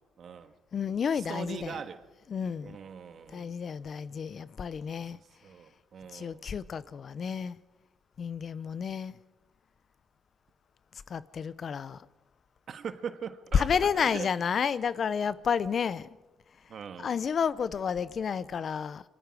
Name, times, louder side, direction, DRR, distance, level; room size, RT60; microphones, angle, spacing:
voice 1, 0.2-0.5 1.1-2.0 2.6-3.5 5.1-6.5 12.7-14.3 16.7-17.1, right 7 dB, 60° right, 1.7 m, -41 dB
voice 2, 0.7-1.8 2.3-2.8 3.3-5.2 6.1-7.6 8.2-9.2 11.1-12.0 13.5-16.1 17.0-19.0, left 7 dB, 50° left, 0.7 m, -30 dB
26.0 x 25.5 x 4.9 m
cardioid pair, 90°, 0 cm